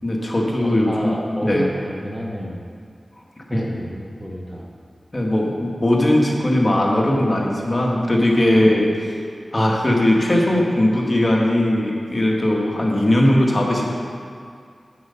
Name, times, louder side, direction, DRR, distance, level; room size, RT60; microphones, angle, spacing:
voice 1, 0.0-1.1 1.4-1.6 3.5-3.6 5.1-8.9 9.5-13.9, left 1 dB, 35° left, -2 dB, 1.7 m, -19 dB
voice 2, 0.6-2.6 3.5-4.7 8.4-8.7, equal, 5° right, -2 dB, 1.2 m, -29 dB
8.1 x 7.7 x 5.7 m, 2.2 s
wide cardioid pair, 55°, 0 cm